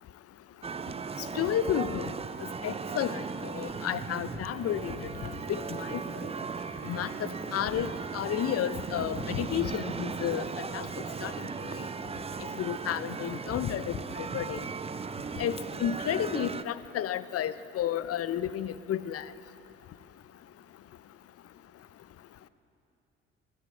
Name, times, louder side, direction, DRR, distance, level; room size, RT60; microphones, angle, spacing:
sound 1, 0.6-16.6, right 5 dB, 20° right, 0.5 m, -37 dB
voice 1, 1.3-2.1 2.6-4.9 5.2-6.0 6.8-10.4 10.7-10.9 11.2-11.3 11.6-11.7 12.6-14.6 15.4-19.2, left 10 dB, 45° left, 16 dB, 0.6 m, -32 dB
sound 2, 1.7-11.6, left 1 dB, 25° left, 3.2 m, -59 dB
14.0 x 10.0 x 8.1 m, 2.7 s
hypercardioid pair, 55°, 33 cm